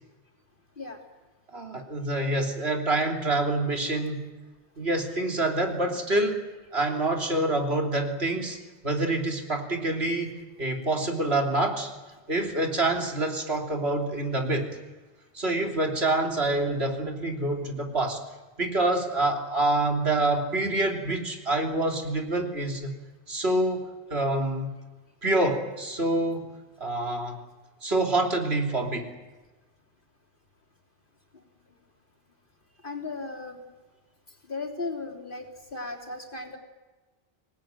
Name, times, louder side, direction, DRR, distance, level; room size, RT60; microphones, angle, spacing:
voice 1, 1.5-4.3 4.8-6.4 6.7-8.6 8.8-10.3 10.6-11.9 12.3-14.7 15.3-18.2 18.6-22.9 23.3-24.7 25.2-26.5 26.8-27.4 27.8-29.1, right 2 dB, 80° right, 2 dB, 3.7 m, -26 dB
voice 2, 32.8-33.6 34.5-36.6, left 3 dB, 55° left, 2 dB, 3.7 m, -36 dB
25.5 x 19.0 x 9.2 m, 1.2 s
omnidirectional pair, 1.0 m